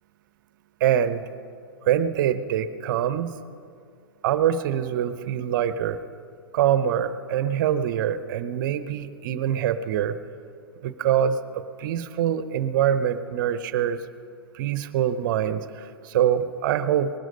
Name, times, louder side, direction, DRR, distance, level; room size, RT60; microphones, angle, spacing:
voice 1, 0.8-1.2 1.8-3.4 4.2-6.0 6.5-10.2 10.8-14.0 14.5-17.1, right 10 dB, 50° right, 13 dB, 0.8 m, -24 dB
19.5 x 12.5 x 5.3 m, 2.4 s
hypercardioid pair, 110°, 13 cm